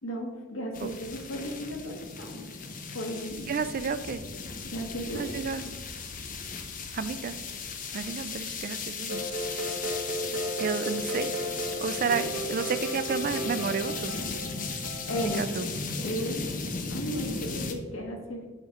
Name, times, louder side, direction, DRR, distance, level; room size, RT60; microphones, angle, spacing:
voice 1, 0.0-2.4 2.9-3.5 4.6-5.3 15.1-15.4 16.0-16.4 16.8-18.5, equal, 75° left, 2 dB, 1.3 m, -35 dB
sound 1, 0.7-17.7, left 4 dB, 40° left, 0.6 m, -36 dB
voice 2, 3.4-4.2 5.1-5.7 6.9-7.4 7.9-9.2 10.6-11.3 11.8-14.1 15.2-15.7, right 5 dB, 40° right, 12 dB, 0.3 m, -31 dB
sound 2, 9.1-15.4, right 1 dB, 60° right, 1.1 m, -34 dB
8.0 x 4.2 x 4.8 m, 1.4 s
head